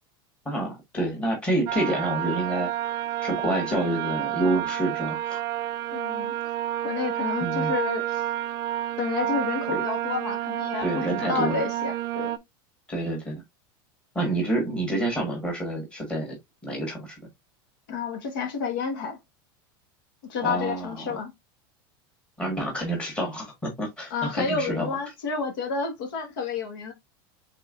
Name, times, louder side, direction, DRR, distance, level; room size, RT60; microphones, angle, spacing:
voice 1, 0.5-2.7 3.2-5.4 7.4-7.7 9.7-9.8 10.8-11.6 12.9-13.4 14.2-16.4 16.6-17.2 20.4-21.2 22.4-25.0, right 1 dB, 10° left, 1.7 m, -28 dB
sound 1, 1.7-12.4, right 12 dB, 30° right, 0.4 m, -30 dB
voice 2, 5.9-6.3 6.8-8.2 9.0-12.4 17.9-19.2 20.2-21.3 24.1-26.9, left 5 dB, 70° left, 1.5 m, -30 dB
5.4 x 3.7 x 2.5 m
supercardioid pair, 175°, 12 cm